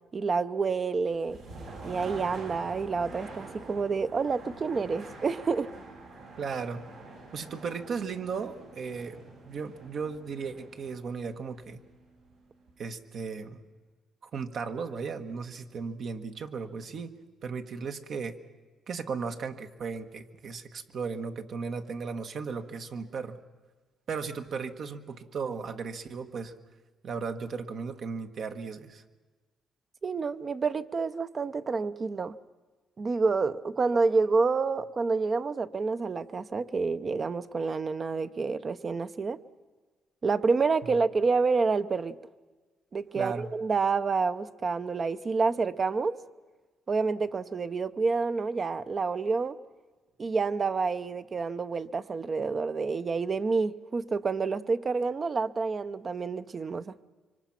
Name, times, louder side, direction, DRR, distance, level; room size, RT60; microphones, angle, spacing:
voice 1, 0.1-1.4 1.8-5.7 30.0-32.4 33.0-39.4 40.2-42.2 42.9-46.2 46.9-49.6 50.2-56.9, right 4 dB, 40° right, 0.8 m, -28 dB
sound 1, 1.0-12.9, right 3 dB, 85° right, 7.3 m, -46 dB
voice 2, 6.4-6.8 7.3-11.8 12.8-13.6 14.2-17.1 17.4-18.4 18.9-23.4 24.1-26.5 27.0-29.0 40.8-40.9 43.1-43.5, right 5 dB, 60° right, 1.4 m, -36 dB
25.5 x 24.5 x 5.9 m
cardioid pair, 90°, 0 cm